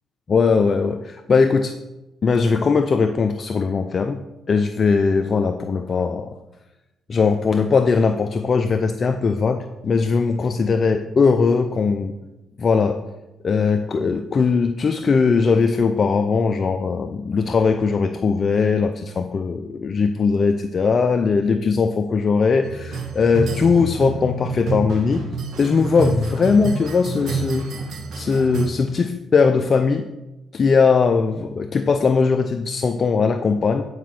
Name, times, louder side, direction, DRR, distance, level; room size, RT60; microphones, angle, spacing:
voice 1, 0.3-1.7 2.2-4.2 4.5-6.3 7.1-12.1 12.6-13.0 13.4-25.3 25.6-27.7 28.1-30.1 30.5-33.9, left 5 dB, 45° left, 7 dB, 0.5 m, -19 dB
sound 1, 22.6-28.7, right 3 dB, 70° right, 1.7 m, -28 dB
9.7 x 5.1 x 5.9 m, 1.0 s
cardioid pair, 90°, 0 cm